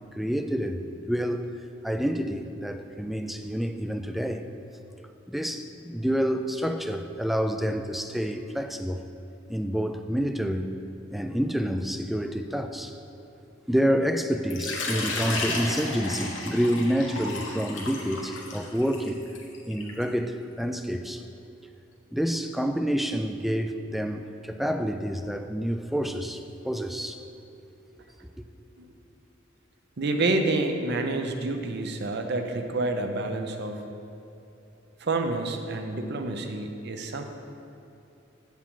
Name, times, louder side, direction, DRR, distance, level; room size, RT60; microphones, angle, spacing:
voice 1, 0.1-1.5 1.8-4.4 5.3-9.0 9.5-10.8 11.1-13.0 13.7-19.2 19.6-21.2 22.1-27.2, equal, ahead, 7 dB, 0.3 m, -28 dB
Water / Liquid, 14.5-20.0, left 3 dB, 80° left, 1.2 m, -33 dB
voice 2, 30.0-33.8 35.0-37.2, right 2 dB, 60° right, 5 dB, 0.7 m, -28 dB
8.3 x 7.3 x 3.7 m, 2.9 s
head